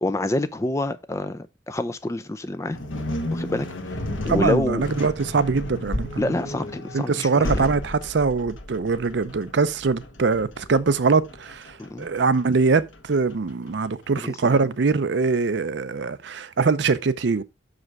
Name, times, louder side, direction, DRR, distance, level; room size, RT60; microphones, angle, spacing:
voice 1, 0.0-2.8 3.3-3.9 4.2-4.8 6.2-7.7 11.8-12.1 14.2-14.6, left 2 dB, 15° left, 0.4 m, -27 dB
sound 1, 2.7-13.9, left 1 dB, 80° left, 1.1 m, -33 dB
voice 2, 4.3-6.3 6.9-17.4, right 4 dB, 60° right, 0.5 m, -23 dB
6.1 x 5.0 x 4.6 m
head